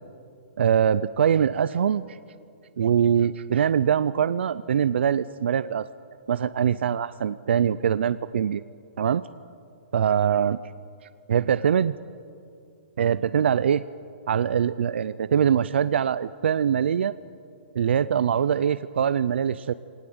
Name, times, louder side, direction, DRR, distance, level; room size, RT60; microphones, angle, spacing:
voice 1, 0.6-2.2 2.8-5.9 6.3-8.6 9.0-9.2 9.9-10.6 11.3-11.9 13.0-13.8 14.3-17.2 17.8-19.7, right 8 dB, 65° right, 16 dB, 0.5 m, -23 dB
23.0 x 19.0 x 8.0 m, 2.4 s
hypercardioid pair, 170°, 7 cm